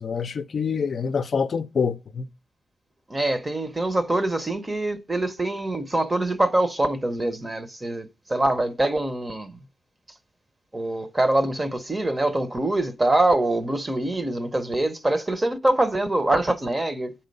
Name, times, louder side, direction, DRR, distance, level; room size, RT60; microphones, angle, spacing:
voice 1, 0.0-2.3, left 6 dB, 60° left, 0.5 m, -26 dB
voice 2, 3.1-9.6 10.7-17.1, right 1 dB, 20° right, 0.8 m, -24 dB
8.9 x 4.3 x 5.3 m
cardioid pair, 100°, 0 cm